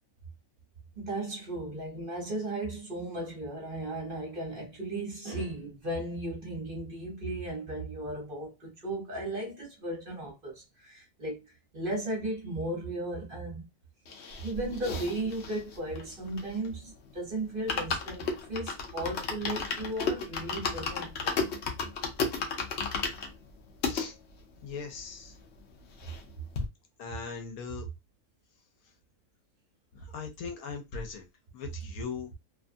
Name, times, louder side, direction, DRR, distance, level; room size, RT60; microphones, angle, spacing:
voice 1, 1.0-11.4 11.7-13.7 14.4-21.5, right 1 dB, 40° right, 1.2 m, -36 dB
sound 1, 14.1-16.8 17.2-17.3 17.5-24.1 24.6-24.7 24.9-25.0 25.3-26.3 26.6-26.7, left 4 dB, 60° left, 0.8 m, -34 dB
voice 2, 23.8-24.2 24.6-25.4 27.0-27.9 29.9-31.3 31.5-32.3, left 5 dB, 75° left, 1.1 m, -39 dB
2.7 x 2.4 x 2.5 m
omnidirectional pair, 1.6 m